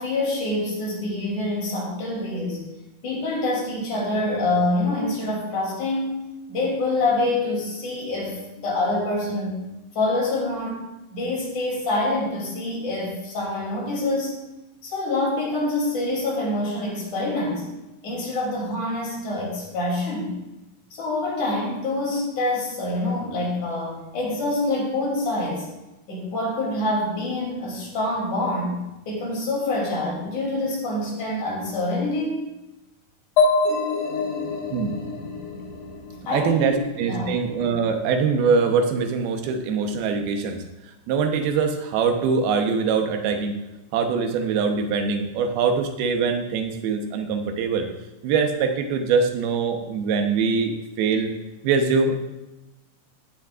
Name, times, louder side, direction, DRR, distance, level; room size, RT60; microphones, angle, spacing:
voice 1, 0.0-2.6 3.0-6.2 6.5-9.6 10.0-10.8 11.1-14.3 14.8-17.7 18.0-20.3 20.9-25.7 26.1-32.4 36.3-36.8 37.0-37.3, left 2 dB, 55° left, -3 dB, 4.2 m, -26 dB
sound 1, 33.4-37.0, left 3 dB, 70° left, 3.4 m, -25 dB
voice 2, 36.3-40.6 41.1-43.6 43.9-47.9 48.2-51.3 51.6-52.2, right 5 dB, 90° right, 5 dB, 2.9 m, -23 dB
15.5 x 9.3 x 2.4 m, 1.0 s
omnidirectional pair, 4.3 m